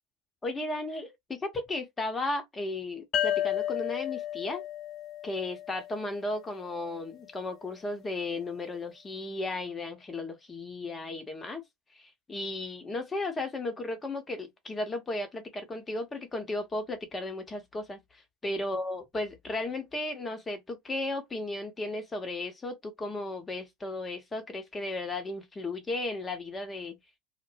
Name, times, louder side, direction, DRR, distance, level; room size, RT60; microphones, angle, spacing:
voice 1, 0.4-4.6 5.2-11.6 11.9-27.0, left 2 dB, 20° left, 0.9 m, -35 dB
sound 1, 3.1-6.6, left 12 dB, 40° left, 0.3 m, -33 dB
2.1 x 2.0 x 3.2 m
hypercardioid pair, 80°, 0 cm